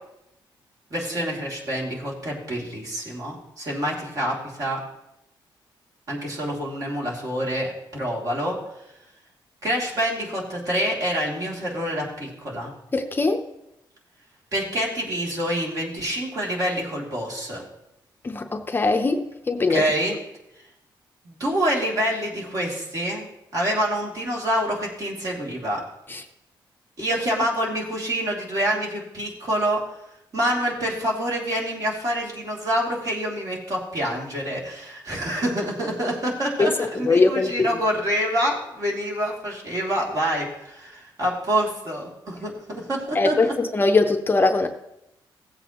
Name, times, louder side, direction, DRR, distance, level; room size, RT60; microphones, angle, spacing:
voice 1, 0.9-4.8 6.1-8.6 9.6-12.7 14.5-17.6 19.7-20.2 21.2-25.8 27.0-29.8 30.3-43.5, equal, 45° right, -3 dB, 2.8 m, -27 dB
voice 2, 12.9-13.4 18.2-19.8 26.1-26.2 36.6-37.7 43.1-44.7, left 3 dB, 25° left, 6 dB, 0.7 m, -21 dB
16.5 x 8.0 x 3.0 m, 0.86 s
cardioid pair, 125°, 9 cm